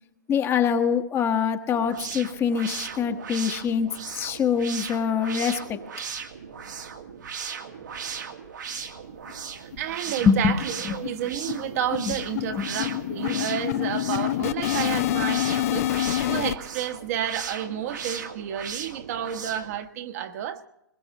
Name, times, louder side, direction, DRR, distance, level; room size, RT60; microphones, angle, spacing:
voice 1, 0.3-5.8 10.2-10.5 10.9-11.0 12.1-12.2 12.6-12.7, left 7 dB, 25° left, 1.3 m, -24 dB
sound 1, 1.7-19.8, right 7 dB, 75° right, 2.1 m, -37 dB
sound 2, 9.3-9.4 9.7-9.8 10.2-10.3 10.6-16.6, left 14 dB, 55° left, 0.8 m, -27 dB
voice 2, 9.6-15.9 16.3-20.7, right 10 dB, 55° right, 1.5 m, -31 dB
22.0 x 21.5 x 3.0 m
hypercardioid pair, 115°, 10 cm